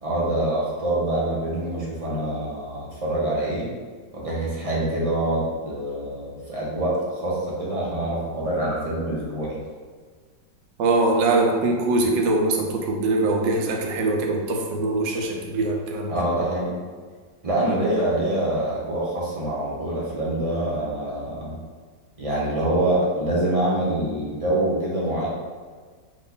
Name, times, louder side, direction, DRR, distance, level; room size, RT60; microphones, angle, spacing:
voice 1, 0.0-3.7 4.1-9.6 16.1-16.7 17.4-21.6 22.2-25.3, right 1 dB, 40° right, -5 dB, 0.5 m, -25 dB
voice 2, 10.8-16.3, right 2 dB, 80° right, 1 dB, 1.3 m, -22 dB
5.2 x 2.4 x 3.8 m, 1.5 s
omnidirectional pair, 1.9 m